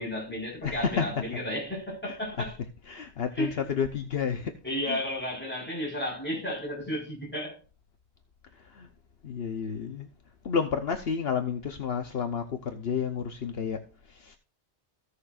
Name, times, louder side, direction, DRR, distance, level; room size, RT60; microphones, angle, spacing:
voice 1, 0.0-2.5 3.4-3.6 4.6-7.6, equal, 10° left, 4.7 m, -33 dB
voice 2, 0.6-1.2 2.1-2.5 2.9-4.6 4.9-5.0 8.6-8.9 9.2-10.1 10.4-14.4, left 6 dB, 65° left, 1.2 m, -31 dB
16.5 x 6.5 x 2.5 m
omnidirectional pair, 1.1 m